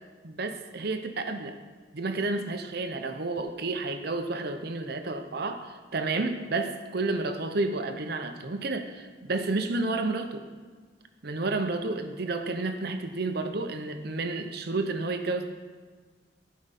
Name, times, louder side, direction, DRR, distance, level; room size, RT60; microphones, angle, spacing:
voice 1, 0.2-1.6 1.9-10.4 11.2-15.5, right 3 dB, 55° right, 7 dB, 0.8 m, -31 dB
15.5 x 5.2 x 4.2 m, 1.5 s
head